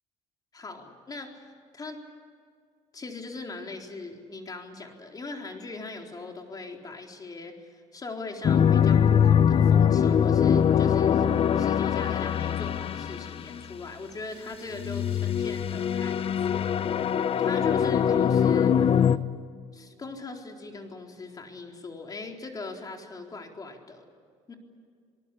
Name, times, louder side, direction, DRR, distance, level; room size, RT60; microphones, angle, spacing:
voice 1, 0.5-2.0 2.9-11.2 11.6-17.1 17.4-18.9 19.7-24.1 24.5-24.6, left 3 dB, 30° left, 3 dB, 4.0 m, -40 dB
sound 1, 8.4-13.7 14.7-19.2, left 8 dB, 45° left, 1.0 m, -22 dB
27.5 x 19.0 x 8.6 m, 2.1 s
cardioid pair, 95°, 13 cm